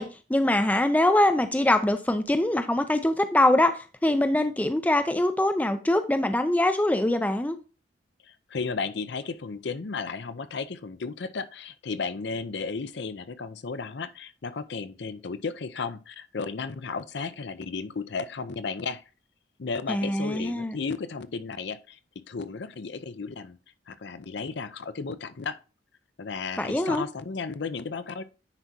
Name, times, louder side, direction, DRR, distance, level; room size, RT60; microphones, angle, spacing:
voice 1, 0.0-7.6 19.9-20.8 26.6-27.0, left 1 dB, 10° left, 0.4 m, -23 dB
voice 2, 8.2-19.0 19.6-22.0 22.3-23.6 23.9-25.6 26.2-28.2, left 4 dB, 65° left, 0.6 m, -34 dB
9.8 x 4.6 x 2.7 m
head